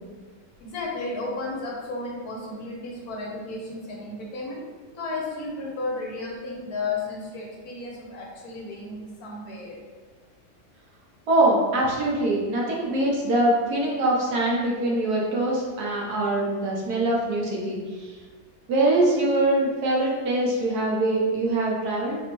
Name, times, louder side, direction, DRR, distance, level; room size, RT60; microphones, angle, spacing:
voice 1, 0.6-4.6 5.0-9.8, left 3 dB, 65° left, -2 dB, 1.2 m, -33 dB
voice 2, 11.3-18.2 18.7-22.2, right 2 dB, 65° right, -3 dB, 1.3 m, -23 dB
4.3 x 3.1 x 3.0 m, 1.4 s
omnidirectional pair, 1.9 m